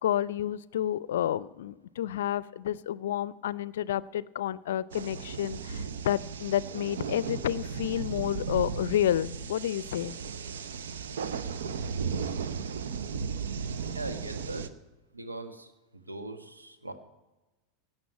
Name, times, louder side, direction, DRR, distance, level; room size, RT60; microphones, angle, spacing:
voice 1, 0.0-10.2, left 11 dB, 65° left, 20 dB, 0.5 m, -30 dB
sound 1, 4.9-14.7, right 6 dB, 70° right, 0.8 m, -35 dB
voice 2, 13.9-14.7 15.1-16.9, right 2 dB, 85° right, 7 dB, 1.4 m, -40 dB
17.5 x 6.4 x 8.3 m, 1.1 s
figure-of-eight pair, 85°, 0 cm